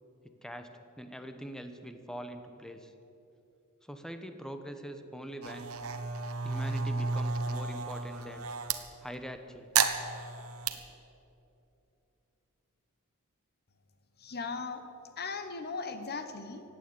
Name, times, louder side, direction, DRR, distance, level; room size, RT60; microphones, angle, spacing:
voice 1, 0.2-0.7 1.0-2.9 3.8-5.7 6.4-8.5 9.0-9.7, equal, 5° left, 7 dB, 0.9 m, -43 dB
sound 1, 5.4-8.8 9.7-10.7, right 5 dB, 75° right, 1.1 m, -32 dB
voice 2, 14.2-14.9 15.2-16.6, left 4 dB, 45° left, 9 dB, 1.1 m, -38 dB
15.5 x 9.1 x 9.4 m, 2.9 s
head